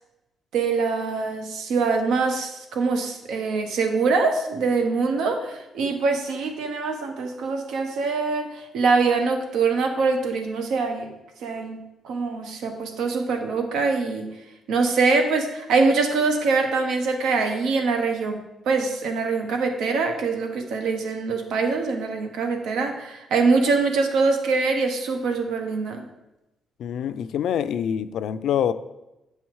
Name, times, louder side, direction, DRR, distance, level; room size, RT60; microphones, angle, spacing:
voice 1, 0.5-11.1 11.4-11.8 12.0-14.3 14.7-18.4 18.7-26.0, right 4 dB, 90° right, 5 dB, 1.1 m, -23 dB
voice 2, 26.8-28.7, left 9 dB, 70° left, 12 dB, 0.4 m, -25 dB
9.3 x 5.6 x 4.7 m, 0.96 s
cardioid pair, 155°, 0 cm